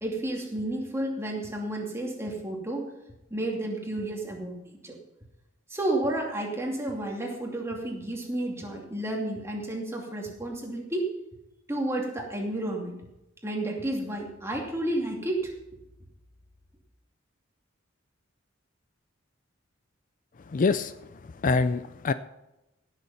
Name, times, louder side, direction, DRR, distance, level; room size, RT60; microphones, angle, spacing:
voice 1, 0.0-2.9 3.3-5.0 5.7-11.1 11.7-12.9 13.4-15.5, right 1 dB, 15° right, 0 dB, 2.5 m, -31 dB
voice 2, 20.5-21.1 21.4-22.1, left 4 dB, 40° left, 12 dB, 0.4 m, -25 dB
17.0 x 7.0 x 5.7 m, 0.95 s
head